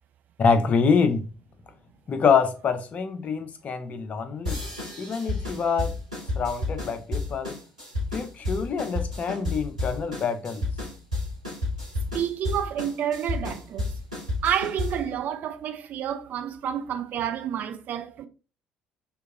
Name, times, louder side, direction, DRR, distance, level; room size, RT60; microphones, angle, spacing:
voice 1, 0.4-1.3 2.1-4.6 5.0-6.0 6.4-7.6 8.1-10.6, left 5 dB, 35° left, 0.5 m, -25 dB
sound 1, 4.4-15.1, left 2 dB, 85° right, 1.2 m, -31 dB
voice 2, 12.1-14.0 14.4-18.3, right 9 dB, 45° right, 0.4 m, -29 dB
3.5 x 2.9 x 2.3 m
figure-of-eight pair, 55°, 4 cm